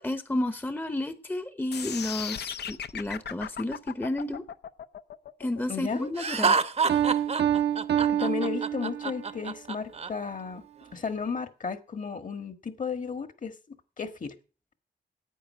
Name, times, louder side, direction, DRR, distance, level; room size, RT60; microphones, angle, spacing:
voice 1, 0.0-4.4 5.4-6.6, left 1 dB, 10° left, 11 dB, 0.8 m, -31 dB
sound 1, 1.7-7.7, left 8 dB, 80° left, 0.7 m, -37 dB
voice 2, 5.7-6.1 8.1-10.6 10.9-13.5 14.0-14.3, left 6 dB, 50° left, 10 dB, 1.6 m, -34 dB
Laughter, 6.2-10.1, right 5 dB, 40° right, 0.8 m, -27 dB
Piano, 6.9-9.3, right 10 dB, 90° right, 1.1 m, -27 dB
10.0 x 8.8 x 7.4 m, 0.36 s
cardioid pair, 90°, 17 cm